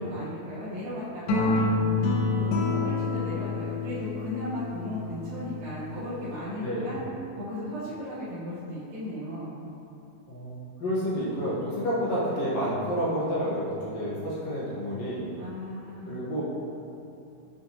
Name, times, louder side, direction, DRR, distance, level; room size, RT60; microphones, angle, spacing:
voice 1, 0.0-1.5 2.4-7.0 7.3-9.6 15.4-16.2, left 1 dB, 75° right, -10 dB, 1.7 m, -36 dB
sound 1, 1.3-5.7, left 3 dB, 90° left, 2.2 m, -27 dB
voice 2, 6.6-7.0 10.3-15.3 16.0-16.4, equal, 70° left, -8 dB, 1.8 m, -29 dB
7.2 x 2.8 x 2.6 m, 2.8 s
omnidirectional pair, 3.7 m